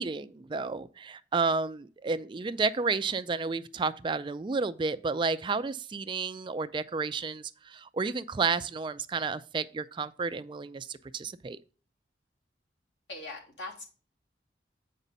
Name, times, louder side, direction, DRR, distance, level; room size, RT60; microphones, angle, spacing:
voice 1, 0.0-11.6, right 4 dB, 25° right, 0.3 m, -31 dB
voice 2, 13.1-13.8, left 2 dB, 85° left, 2.7 m, -41 dB
8.1 x 5.5 x 3.9 m
head